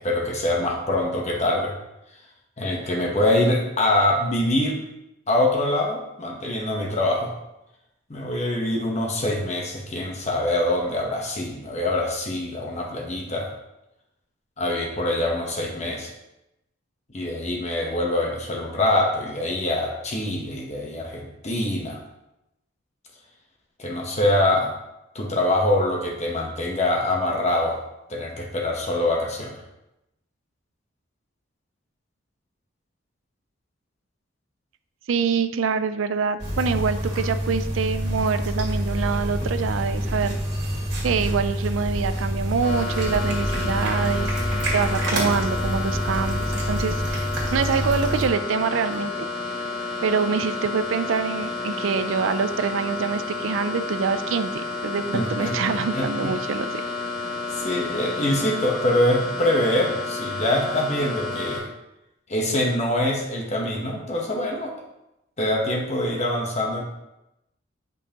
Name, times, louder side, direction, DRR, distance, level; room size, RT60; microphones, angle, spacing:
voice 1, 0.0-1.7 2.6-4.8 5.3-7.3 8.1-13.5 14.6-16.1 17.1-22.0 23.8-24.7 25.1-27.8 28.1-29.6 55.1-56.1 57.5-61.7 62.3-64.7 65.4-66.8, left 1 dB, 35° left, 0 dB, 1.0 m, -24 dB
voice 2, 35.1-40.4 41.0-49.3 50.0-56.7, right 5 dB, 75° right, 11 dB, 0.4 m, -25 dB
sound 1, 36.4-48.3, equal, 55° right, 1.9 m, -27 dB
sound 2, 38.9-49.4, left 1 dB, 75° left, 1.5 m, -47 dB
sound 3, 42.6-61.6, left 3 dB, 50° left, 1.9 m, -31 dB
9.1 x 5.4 x 2.9 m, 0.90 s
head